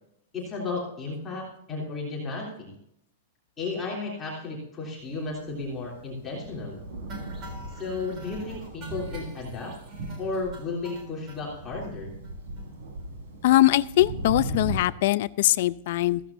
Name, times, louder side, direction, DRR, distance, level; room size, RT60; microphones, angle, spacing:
voice 1, 0.3-2.7 3.6-6.8 7.7-9.7 10.2-12.1, left 3 dB, 10° left, -4 dB, 3.3 m, -33 dB
Thunder, 5.2-14.8, right 2 dB, 55° right, 5.2 m, -38 dB
sound 1, 7.1-11.4 11.8-11.9 12.2-12.3 12.6-12.7 13.0-13.1, right 1 dB, 25° right, 3.5 m, -45 dB
voice 2, 13.4-16.2, left 15 dB, 50° left, 15 dB, 0.5 m, -22 dB
15.5 x 15.0 x 2.7 m, 0.74 s
supercardioid pair, 175°, 0 cm